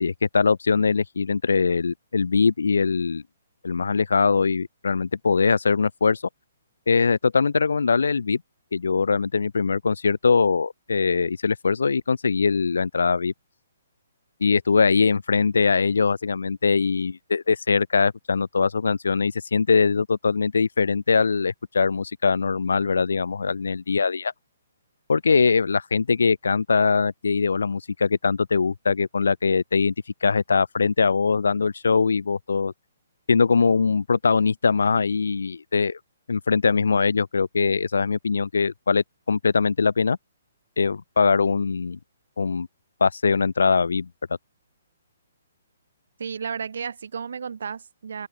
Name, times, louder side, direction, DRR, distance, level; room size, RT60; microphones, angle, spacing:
voice 1, 0.0-3.2 3.6-6.2 6.9-8.4 8.7-13.3 14.4-24.3 25.1-29.9 30.2-32.7 33.3-36.0 36.3-40.2 40.8-42.0 42.4-42.7 43.0-44.1, left 5 dB, 90° left, 0.6 m, -22 dB
voice 2, 46.2-48.3, right 6 dB, 70° right, 0.9 m, -33 dB
hypercardioid pair, 155°, 0 cm